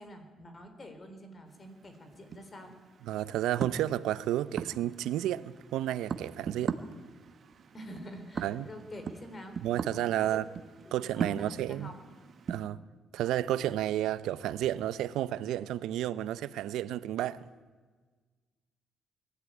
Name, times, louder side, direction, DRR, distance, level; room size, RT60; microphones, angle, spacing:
voice 1, 0.0-2.7 7.7-9.6 10.2-10.4 11.0-12.0, equal, 35° left, 4.0 m, -47 dB
sound 1, 1.5-12.6, right 6 dB, 50° right, 1.3 m, -40 dB
voice 2, 3.0-6.8 8.4-8.7 9.6-10.4 10.9-11.9 12.5-12.8 13.1-17.5, right 12 dB, 90° right, 0.7 m, -31 dB
21.5 x 13.0 x 9.3 m
cardioid pair, 90°, 0 cm